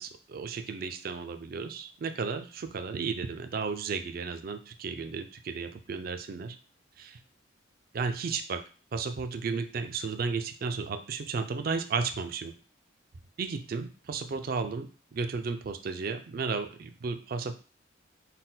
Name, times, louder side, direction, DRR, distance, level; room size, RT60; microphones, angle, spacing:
voice 1, 0.0-6.6 7.0-7.2 7.9-8.6 8.9-12.5 13.4-17.5, right 4 dB, 50° right, 9 dB, 0.4 m, -34 dB
4.0 x 2.1 x 3.9 m, 0.37 s
head